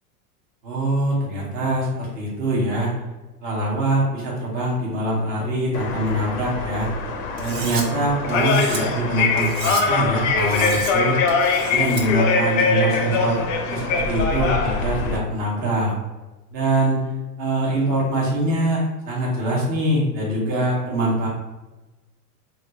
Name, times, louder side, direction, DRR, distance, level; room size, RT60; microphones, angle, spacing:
voice 1, 0.6-2.9 3.4-6.9 7.4-11.2 11.7-15.9 16.5-17.0 17.4-21.3, right 1 dB, 20° right, -5 dB, 0.6 m, -23 dB
sound 1, 5.7-15.2, left 4 dB, 55° left, 0.5 m, -23 dB
Cutlery silverware, 7.4-7.8 8.3-8.8 9.4-9.8 10.4-10.9 11.3-12.0, right 4 dB, 90° right, 0.8 m, -32 dB
2.3 x 2.3 x 3.9 m, 1.1 s
supercardioid pair, 145°, 49 cm